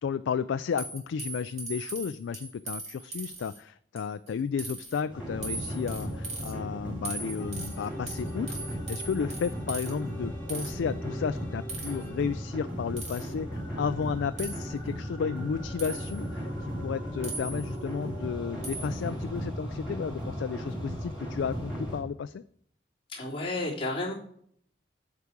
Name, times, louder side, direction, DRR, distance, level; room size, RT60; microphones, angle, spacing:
voice 1, 0.0-22.4, left 6 dB, 75° left, 13 dB, 0.3 m, -33 dB
sound 1, 0.8-3.6 4.0-4.3 4.6-5.0 5.4-6.5 7.1-9.9 10.5-10.7 11.7-12.1 13.0-13.3 14.4-14.6 15.8-16.2 17.2-17.8 18.6-19.0, right 3 dB, 35° right, 2.1 m, -39 dB
sound 2, 5.1-22.0, equal, 5° right, 3.7 m, -36 dB
sound 3, 7.4-12.4, left 1 dB, 10° left, 1.2 m, -48 dB
voice 2, 23.1-24.1, left 2 dB, 30° left, -6 dB, 3.3 m, -31 dB
8.2 x 4.8 x 7.1 m, 0.65 s
head